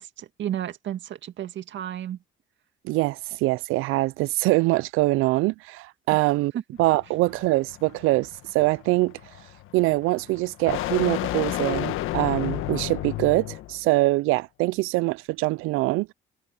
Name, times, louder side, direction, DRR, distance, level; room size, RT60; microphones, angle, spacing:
voice 1, 0.0-2.2 6.5-6.6, right 10 dB, 60° right, 2.2 m, -32 dB
voice 2, 2.8-6.5 6.8-9.1 9.7-16.1, right 21 dB, 80° right, 0.5 m, -23 dB
sound 1, 6.8-13.8, left 15 dB, 75° left, 1.5 m, -32 dB
supercardioid pair, 80°, 21 cm